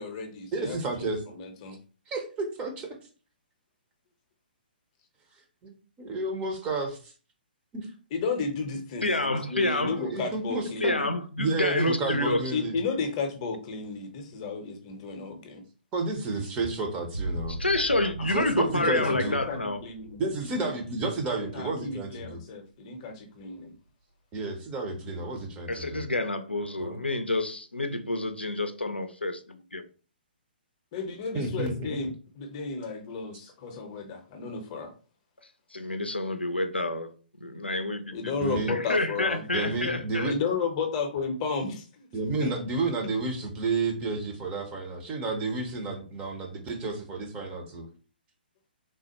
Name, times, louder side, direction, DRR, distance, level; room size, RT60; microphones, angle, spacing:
voice 1, 0.0-1.7 8.1-11.1 12.3-15.6 18.6-20.6 21.4-23.7 30.9-32.1 32.4-34.9 38.1-39.4 40.3-42.1 42.4-42.5, left 4 dB, 35° left, 0.7 m, -33 dB
voice 2, 0.5-1.2 2.1-2.9 5.6-7.1 7.7-7.9 10.0-10.9 11.4-12.8 15.9-17.6 18.3-19.4 20.2-22.4 24.3-26.0 26.8-27.0 31.3-32.0 38.4-38.7 39.5-40.3 42.1-47.9, right 3 dB, 20° right, 0.6 m, -31 dB
voice 3, 9.0-10.0 10.8-12.4 17.5-19.8 25.7-29.8 35.7-37.1 37.4-38.3 38.7-40.3, left 2 dB, 85° left, 0.4 m, -28 dB
sound 1, 17.1-22.6 23.0-23.6, right 1 dB, 80° right, 0.8 m, -40 dB
3.3 x 2.1 x 2.9 m
figure-of-eight pair, 125°, 6 cm